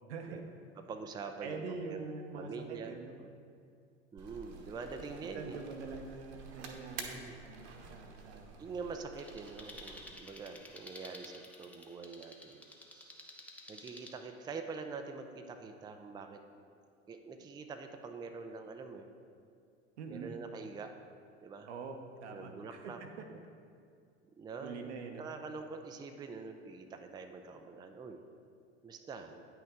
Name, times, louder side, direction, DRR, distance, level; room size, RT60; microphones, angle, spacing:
voice 1, 0.1-0.4 1.4-3.1 5.3-8.6 20.0-20.3 21.7-23.3 24.6-25.2, right 4 dB, 75° right, 4 dB, 1.0 m, -44 dB
voice 2, 0.8-2.0 2.3-2.9 4.1-5.6 7.0-7.4 8.6-12.6 12.9-13.2 13.7-16.4 17.1-19.1 20.1-20.9 21.4-21.7 22.3-23.0 23.3-23.4 24.4-28.2 28.8-29.5, right 4 dB, 10° right, 5 dB, 0.4 m, -45 dB
sound 1, 4.2-10.1, right 5 dB, 45° right, 1.1 m, -50 dB
sound 2, 9.2-14.1, left 1 dB, 5° left, 0.8 m, -52 dB
9.0 x 5.9 x 3.6 m, 2.3 s
hypercardioid pair, 80°, 34 cm